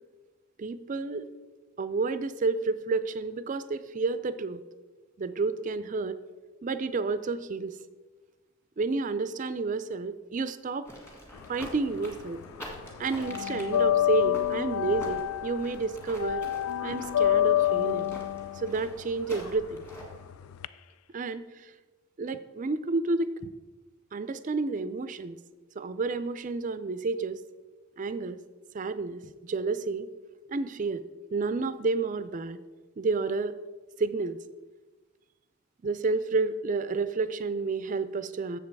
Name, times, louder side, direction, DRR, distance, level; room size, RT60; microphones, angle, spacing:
voice 1, 0.6-1.3 1.8-4.6 5.2-6.2 6.6-7.8 8.8-10.9 11.5-12.4 13.0-16.5 16.8-18.1 18.5-19.8 21.1-21.7 22.2-23.5 24.1-25.4 25.8-27.4 28.0-28.4 28.7-30.1 30.5-31.0 31.3-32.6 33.0-33.5 34.0-34.4 35.8-38.6, right 3 dB, 35° right, 13 dB, 0.4 m, -30 dB
sound 1, 10.8-20.3, equal, 10° left, 1.7 m, -46 dB
sound 2, 11.4-12.5 12.7-20.7, left 11 dB, 85° left, 0.3 m, -28 dB
7.4 x 7.0 x 4.6 m, 1.3 s
head